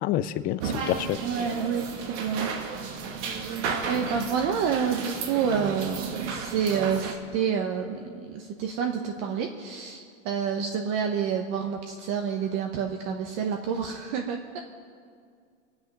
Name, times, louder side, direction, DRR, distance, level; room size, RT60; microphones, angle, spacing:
voice 1, 0.0-0.6 0.9-1.2, left 13 dB, 25° left, 13 dB, 0.4 m, -26 dB
sound 1, 0.6-7.1, right 5 dB, 60° right, 2.3 m, -33 dB
voice 2, 1.2-2.5 3.9-14.6, right 7 dB, 40° right, 3 dB, 1.2 m, -28 dB
24.0 x 9.5 x 5.6 m, 2.2 s
supercardioid pair, 135°, 39 cm